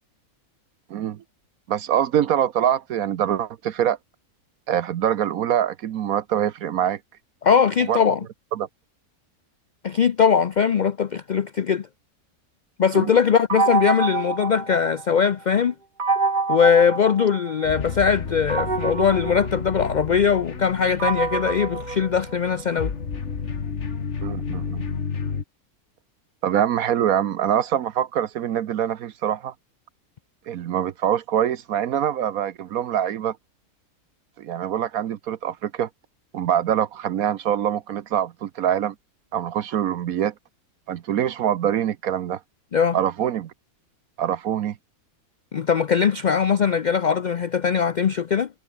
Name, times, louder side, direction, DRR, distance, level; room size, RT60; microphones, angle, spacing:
voice 1, 0.9-1.2 1.7-4.0 4.7-7.0 7.9-8.0 8.5-8.7 12.9-13.1 24.2-24.8 26.4-29.5 30.5-33.4 34.4-35.9 36.3-38.9 39.3-40.3 40.9-42.4 42.9-43.5 44.2-44.7, right 10 dB, 70° right, 1.2 m, -24 dB
voice 2, 7.4-8.2 9.8-11.9 12.8-15.7 16.5-22.9 42.7-43.0 45.5-48.5, left 7 dB, 70° left, 0.4 m, -20 dB
sound 1, 13.5-15.3 16.0-17.8 18.5-22.8, right 4 dB, 30° right, 1.8 m, -27 dB
sound 2, 17.6-25.4, left 5 dB, 50° left, 1.9 m, -31 dB
omnidirectional pair, 1.6 m